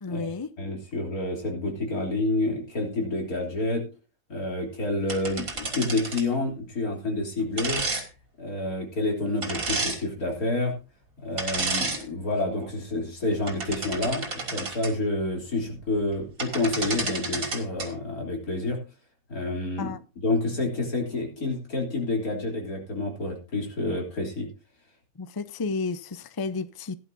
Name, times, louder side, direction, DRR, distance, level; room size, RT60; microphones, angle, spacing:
voice 1, 0.0-0.5 19.8-20.0 25.2-26.9, left 4 dB, 35° left, 0.4 m, -32 dB
voice 2, 0.6-3.8 4.3-7.8 8.4-10.7 11.2-18.8 19.3-20.0 20.2-24.5, left 2 dB, 85° left, 3.8 m, -28 dB
sound 1, 5.1-6.3 7.6-8.0 9.4-10.0 11.4-12.0 12.5-12.7 13.3-14.9 16.1-16.2 16.4-17.9, right 3 dB, 70° right, 2.8 m, -31 dB
17.0 x 11.0 x 2.7 m
omnidirectional pair, 1.5 m